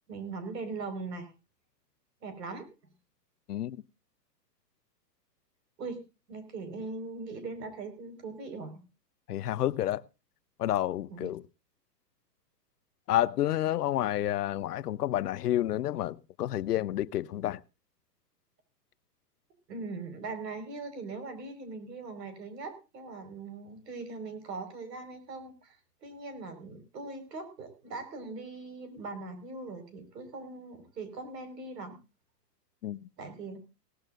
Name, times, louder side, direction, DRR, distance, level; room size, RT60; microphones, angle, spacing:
voice 1, 0.1-1.3 2.2-2.7 5.8-6.0 6.3-8.8 11.1-11.3 19.7-32.0 33.2-33.6, right 3 dB, 75° right, 5.1 m, -40 dB
voice 2, 3.5-3.8 9.3-10.0 10.6-11.4 13.1-17.6 32.8-33.1, left 13 dB, 65° left, 0.8 m, -30 dB
18.0 x 15.5 x 2.5 m
hypercardioid pair, 170°, 50 cm